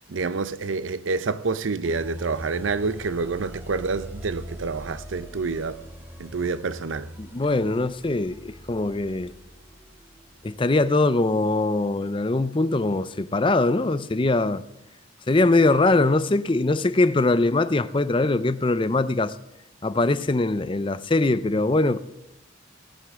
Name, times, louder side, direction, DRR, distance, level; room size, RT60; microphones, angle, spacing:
voice 1, 0.1-5.8 6.2-7.1, right 4 dB, 80° right, 0.6 m, -28 dB
sound 1, 1.8-11.0, equal, 10° right, 2.2 m, -42 dB
voice 2, 7.2-9.3 10.4-14.6 15.3-19.3 19.8-22.0, left 2 dB, 25° left, 0.5 m, -22 dB
17.5 x 14.5 x 3.7 m
head